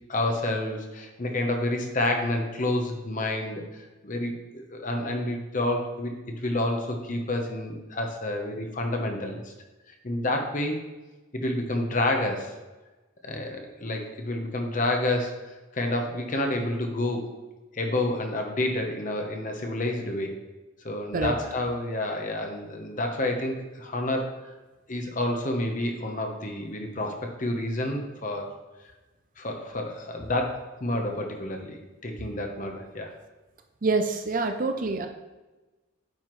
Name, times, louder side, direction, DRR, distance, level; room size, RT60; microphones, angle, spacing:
voice 1, 0.1-3.6 4.0-9.5 10.0-10.8 11.3-12.5 13.2-17.2 17.7-20.3 20.8-24.5 24.9-28.5 29.4-33.1, left 1 dB, 40° left, 3 dB, 1.0 m, -29 dB
voice 2, 33.8-35.1, right 3 dB, 40° right, 6 dB, 0.5 m, -26 dB
9.0 x 5.7 x 3.2 m, 1.1 s
head